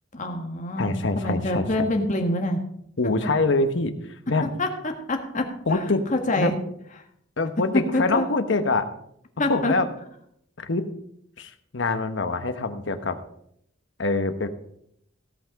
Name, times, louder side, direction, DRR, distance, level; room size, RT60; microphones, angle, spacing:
voice 1, 0.1-2.6 4.6-5.8 6.1-6.5 7.9-8.2 9.4-9.7, left 1 dB, 40° left, 4 dB, 1.7 m, -26 dB
voice 2, 0.8-1.9 3.0-4.5 5.7-6.1 6.4-6.5 7.4-8.9 9.5-9.9 10.6-10.9 11.4-13.2 14.0-14.5, left 3 dB, 65° left, 9 dB, 1.1 m, -25 dB
17.0 x 5.8 x 5.2 m, 0.72 s
head